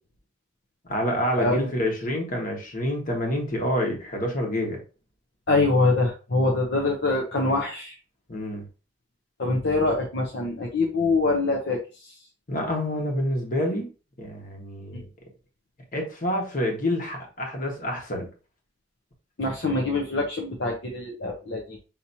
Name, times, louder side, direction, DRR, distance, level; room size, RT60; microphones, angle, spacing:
voice 1, 0.8-4.8 8.3-8.6 12.5-13.9 14.2-15.0 15.9-18.3, equal, 50° left, 1 dB, 1.4 m, -27 dB
voice 2, 5.5-8.0 9.4-12.1 19.4-21.8, left 2 dB, 65° left, -1 dB, 0.7 m, -24 dB
5.8 x 2.9 x 2.7 m, 0.34 s
head